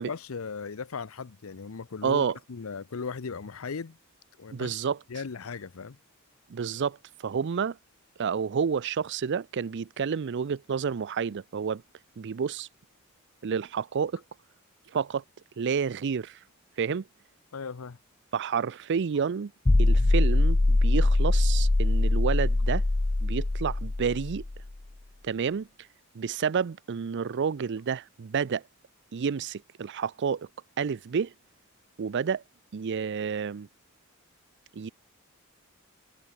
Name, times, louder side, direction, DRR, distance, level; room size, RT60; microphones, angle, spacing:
voice 1, 0.0-4.0 4.4-4.8 5.1-6.0 17.5-18.0, left 5 dB, 75° left, 0.7 m, -37 dB
voice 2, 2.0-2.3 4.5-5.0 6.5-7.8 8.2-11.8 12.2-12.7 13.4-14.2 14.9-15.2 15.6-16.4 16.8-17.1 18.3-19.5 19.8-22.8 23.2-24.4 25.2-25.7 26.1-28.6 29.1-30.5 30.8-31.3 32.0-32.4 32.7-33.7 34.7-34.9, right 6 dB, 55° right, 0.4 m, -29 dB
sound 1, 19.6-24.7, left 2 dB, 20° left, 0.5 m, -23 dB
head